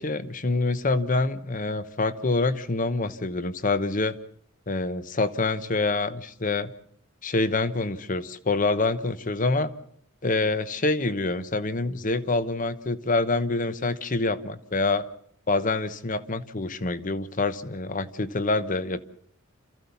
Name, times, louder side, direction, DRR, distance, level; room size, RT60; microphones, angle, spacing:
voice 1, 0.0-4.2 4.7-6.7 7.2-9.7 10.2-15.0 15.5-19.0, left 3 dB, 40° left, 13 dB, 1.0 m, -26 dB
27.5 x 14.5 x 7.0 m, 0.66 s
head